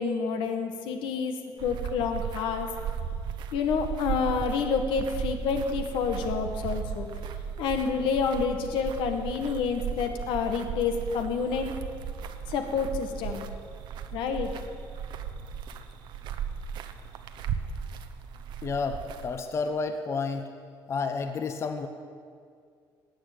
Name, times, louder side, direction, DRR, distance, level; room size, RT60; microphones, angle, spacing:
voice 1, 0.0-1.4 1.6-2.7 3.5-7.1 7.6-11.8 12.5-13.5 14.1-14.5, left 5 dB, 90° left, 5 dB, 1.7 m, -28 dB
sound 1, 1.6-19.4, right 7 dB, 65° right, 1.0 m, -36 dB
voice 2, 18.6-20.5 20.9-21.9, left 4 dB, 35° left, 7 dB, 0.9 m, -30 dB
18.0 x 7.0 x 9.3 m, 2.2 s
cardioid pair, 155°, 8 cm